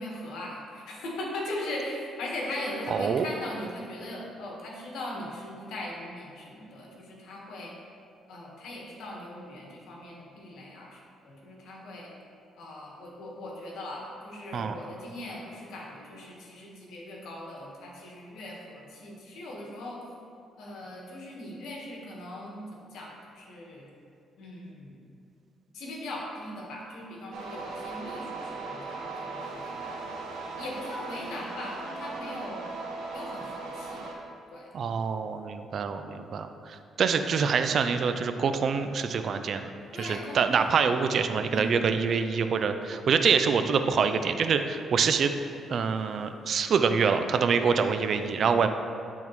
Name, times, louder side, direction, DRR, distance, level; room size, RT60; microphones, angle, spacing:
voice 1, 0.0-7.7 8.3-11.0 11.2-12.1 12.6-20.0 20.6-23.9 24.4-25.0 25.7-32.6 33.1-34.0 34.5-34.7 39.9-40.8 41.5-41.9, left 1 dB, 80° left, -2 dB, 1.3 m, -39 dB
voice 2, 2.9-3.3 14.5-14.8 34.7-39.6 40.0-45.3 45.7-48.7, right 6 dB, 55° right, 8 dB, 0.4 m, -25 dB
sound 1, 27.3-34.1, right 3 dB, 90° right, 1.0 m, -38 dB
10.0 x 3.6 x 3.1 m, 2.5 s
cardioid pair, 90°, 0 cm